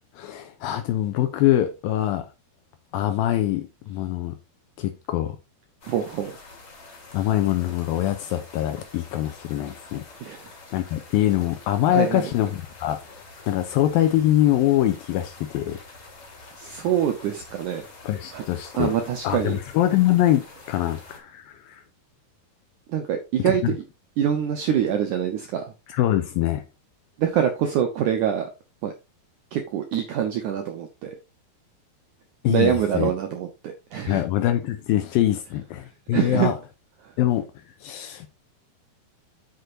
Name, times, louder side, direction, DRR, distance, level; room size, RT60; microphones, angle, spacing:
voice 1, 0.2-2.3 2.9-4.4 4.8-5.4 7.1-10.0 10.7-15.8 18.0-18.9 19.2-21.8 23.6-23.8 25.9-26.6 32.4-33.1 34.1-36.5 37.2-37.5 37.8-38.3, left 13 dB, 80° left, 2.1 m, -23 dB
sound 1, 5.8-21.2, left 3 dB, 40° left, 2.9 m, -46 dB
voice 2, 5.8-6.3 10.2-10.5 11.9-12.3 16.5-17.9 18.3-18.4 18.7-19.6 22.9-23.8 24.2-25.7 27.2-28.5 28.8-28.9 29.5-31.2 32.5-34.2 36.1-36.5 37.0-37.2, right 9 dB, 80° right, 1.8 m, -25 dB
8.2 x 7.9 x 2.6 m
omnidirectional pair, 4.7 m